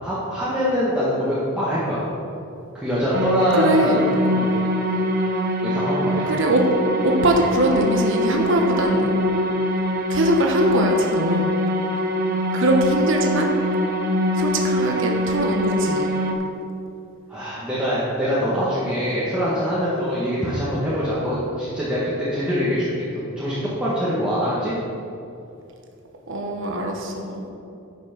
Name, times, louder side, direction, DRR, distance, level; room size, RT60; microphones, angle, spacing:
voice 1, 0.0-2.0 2.7-4.6 5.6-6.3 17.3-24.7, equal, 5° right, -10 dB, 1.5 m, -24 dB
sound 1, 3.1-16.3, equal, 45° right, 1.1 m, -23 dB
voice 2, 3.5-4.0 6.2-6.7 7.0-9.2 10.1-11.5 12.5-13.5 14.3-16.1 26.3-27.4, right 1 dB, 60° right, 2 dB, 1.2 m, -21 dB
10.0 x 6.0 x 5.9 m, 2.7 s
head